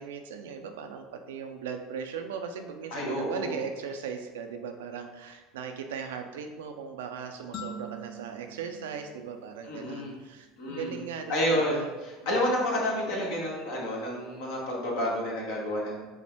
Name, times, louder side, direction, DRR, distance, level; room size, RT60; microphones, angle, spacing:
voice 1, 0.0-11.9 12.2-12.3, right 6 dB, 80° right, 5 dB, 0.4 m, -38 dB
voice 2, 2.9-3.6 9.7-10.2 10.6-11.0 11.3-16.0, equal, 70° left, -3 dB, 1.3 m, -30 dB
sound 1, 7.5-10.2, right 1 dB, 50° left, 0.7 m, -44 dB
5.2 x 2.1 x 3.4 m, 1.2 s
hypercardioid pair, 80°, 0 cm